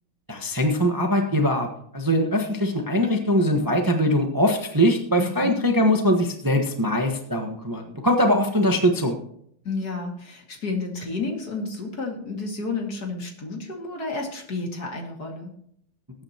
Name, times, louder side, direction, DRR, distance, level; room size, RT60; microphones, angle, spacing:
voice 1, 0.3-1.7 1.9-9.2, equal, 10° right, 3 dB, 1.1 m, -22 dB
voice 2, 5.2-5.6 9.6-15.5, left 3 dB, 50° left, 1 dB, 2.7 m, -31 dB
21.0 x 8.9 x 3.0 m, 0.67 s
omnidirectional pair, 2.2 m